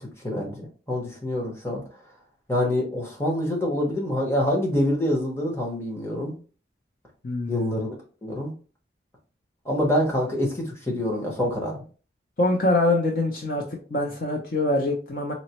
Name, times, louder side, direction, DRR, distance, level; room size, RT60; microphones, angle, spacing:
voice 1, 0.2-1.8 2.5-6.3 7.5-8.0 8.2-8.5 9.6-11.8, left 1 dB, 15° left, -2 dB, 0.9 m, -26 dB
voice 2, 7.2-7.7 12.4-13.6 13.9-15.3, left 2 dB, 50° left, 1 dB, 0.5 m, -24 dB
4.0 x 2.0 x 2.8 m, 0.37 s
head